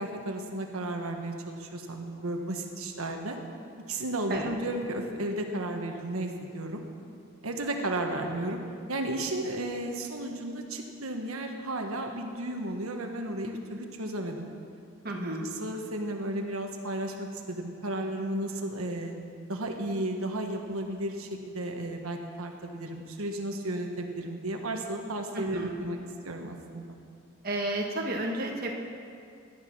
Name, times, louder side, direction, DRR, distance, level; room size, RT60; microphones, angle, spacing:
voice 1, 0.0-3.4 3.9-6.8 7.4-8.6 8.9-14.5 15.4-19.1 19.5-26.0 26.2-27.0, right 1 dB, 90° right, 3 dB, 1.5 m, -33 dB
voice 2, 15.0-15.4 25.3-25.7 27.4-28.7, right 1 dB, 45° right, 0 dB, 1.6 m, -32 dB
17.5 x 12.0 x 6.2 m, 2.4 s
head